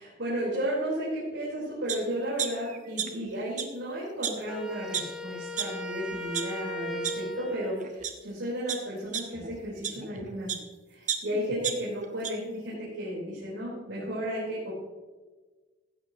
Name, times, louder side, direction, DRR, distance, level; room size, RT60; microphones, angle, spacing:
voice 1, 0.0-10.5 10.9-14.7, equal, 85° right, -7 dB, 4.8 m, -33 dB
sound 1, 1.9-2.0 2.4-3.3 3.5-3.6 4.2-4.3 4.9-5.0 5.6-5.7 6.1-6.4 7.0-7.1 7.8-8.1 8.7-10.6 11.1-12.3 12.7-12.8, right 8 dB, 45° right, 1.2 m, -32 dB
Wind instrument woodwind instrument, 4.5-7.8, left 1 dB, 5° right, 3.1 m, -37 dB
16.0 x 12.0 x 3.1 m, 1.3 s
head